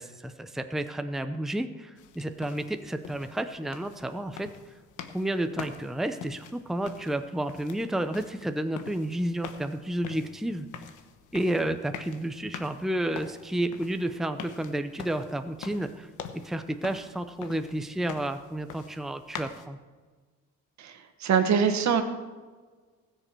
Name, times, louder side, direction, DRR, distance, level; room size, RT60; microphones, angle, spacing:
voice 1, 0.0-4.5 5.1-10.7 11.3-16.1 16.4-19.8, right 1 dB, ahead, 8 dB, 0.8 m, -31 dB
sound 1, 2.0-19.7, left 8 dB, 85° left, 1.2 m, -45 dB
voice 2, 20.8-22.0, right 7 dB, 65° right, 7 dB, 1.6 m, -24 dB
20.0 x 6.8 x 4.6 m, 1.4 s
cardioid pair, 90°, 30 cm